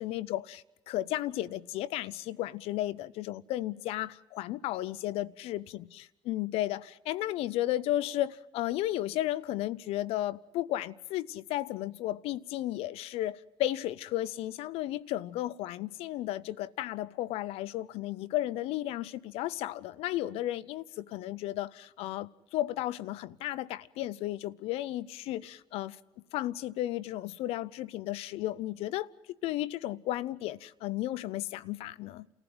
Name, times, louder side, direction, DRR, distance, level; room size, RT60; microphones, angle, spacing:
voice 1, 0.0-26.0 26.3-32.3, left 14 dB, 80° left, 0.7 m, -34 dB
28.5 x 15.0 x 7.9 m
supercardioid pair, 70°, 10 cm